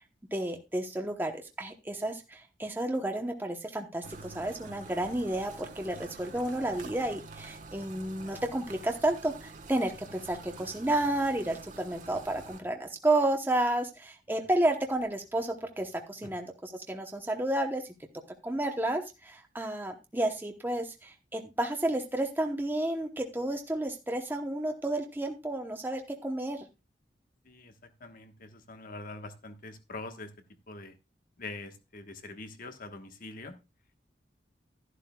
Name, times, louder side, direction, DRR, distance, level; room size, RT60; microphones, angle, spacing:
voice 1, 0.3-17.8 18.4-26.7, right 1 dB, 10° right, 3 dB, 0.9 m, -31 dB
sound 1, 4.0-12.6, right 3 dB, 45° right, 1.3 m, -47 dB
voice 2, 28.0-30.3 30.7-31.0 31.4-33.5, left 2 dB, 50° left, 7 dB, 1.3 m, -44 dB
12.0 x 11.5 x 2.3 m, 0.25 s
head